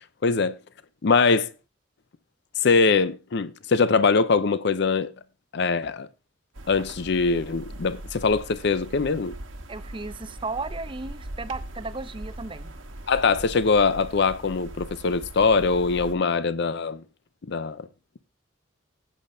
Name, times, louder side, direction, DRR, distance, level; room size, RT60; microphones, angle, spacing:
voice 1, 0.2-0.6 1.0-1.5 2.6-5.1 5.5-6.1 6.7-9.3 13.1-17.0 17.5-17.9, left 4 dB, 60° left, 0.6 m, -22 dB
sound 1, 6.5-16.1, right 1 dB, 85° right, 1.2 m, -40 dB
voice 2, 9.7-12.7, right 3 dB, 25° right, 0.6 m, -35 dB
16.5 x 8.5 x 2.7 m
head